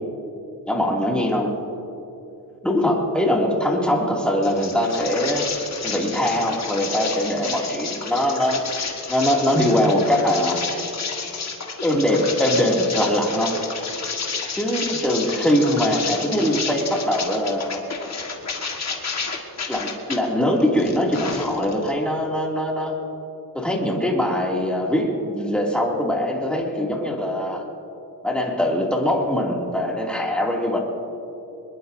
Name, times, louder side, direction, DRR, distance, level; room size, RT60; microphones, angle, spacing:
voice 1, 0.7-1.5 2.6-5.5 5.8-10.7 11.8-13.7 14.5-17.8 19.7-23.0 23.5-27.6 28.2-30.8, left 1 dB, 5° left, -2 dB, 2.7 m, -22 dB
sound 1, 4.4-20.2 20.6-21.9, left 5 dB, 50° left, 1.8 m, -31 dB
24.0 x 21.5 x 2.7 m, 2.8 s
wide cardioid pair, 140°, 36 cm